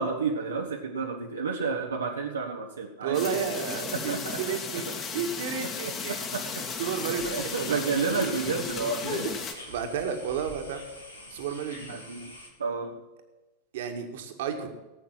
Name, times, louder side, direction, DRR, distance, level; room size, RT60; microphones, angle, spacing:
voice 1, 0.0-3.4 3.9-4.6 4.9-5.0 6.1-6.6 7.3-9.3 11.9-12.3 12.6-12.9, right 5 dB, 75° right, 0 dB, 1.3 m, -31 dB
voice 2, 3.0-4.9 5.1-6.2 6.8-7.9 9.1-9.4 9.7-10.8 11.3-11.9 13.7-14.7, right 7 dB, 55° right, 5 dB, 1.9 m, -32 dB
sound 1, 3.1-9.5, left 5 dB, 30° left, 2.1 m, -35 dB
sound 2, 7.2-12.5, left 1 dB, 85° left, 2.7 m, -46 dB
17.0 x 8.5 x 5.8 m, 1.1 s
figure-of-eight pair, 90°, 0 cm